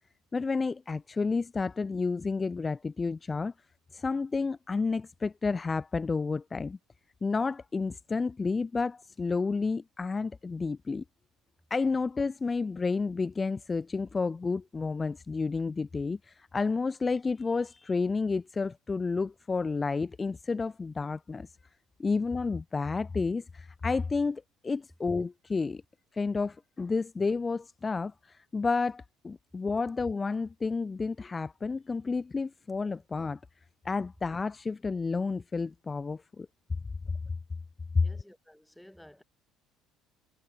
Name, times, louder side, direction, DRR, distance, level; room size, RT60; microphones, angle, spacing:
voice 1, 0.3-3.5 3.9-6.8 7.2-11.0 11.7-21.5 22.0-25.8 26.1-33.4 33.8-36.5 37.9-38.0, left 4 dB, 25° left, 0.8 m, -31 dB
voice 2, 38.0-39.2, left 1 dB, 5° left, 5.6 m, -54 dB
figure-of-eight pair, 55°, 0 cm